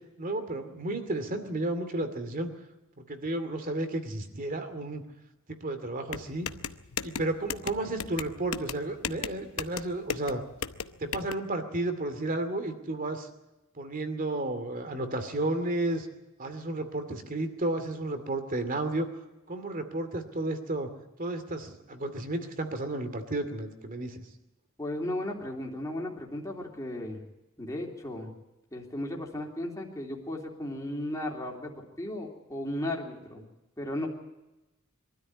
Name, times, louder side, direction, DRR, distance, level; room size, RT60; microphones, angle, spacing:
voice 1, 0.2-2.5 3.1-5.0 5.5-6.5 7.0-10.4 11.0-13.3 13.8-16.1 16.4-19.1 19.5-20.9 21.2-24.2, right 2 dB, 40° right, 8 dB, 2.4 m, -32 dB
sound 1, 6.1-11.3, left 7 dB, 85° left, 0.9 m, -36 dB
voice 2, 24.8-27.2 27.6-28.3 28.7-33.4 33.8-34.1, left 1 dB, 15° left, -1 dB, 3.1 m, -35 dB
23.0 x 13.0 x 9.6 m, 0.99 s
head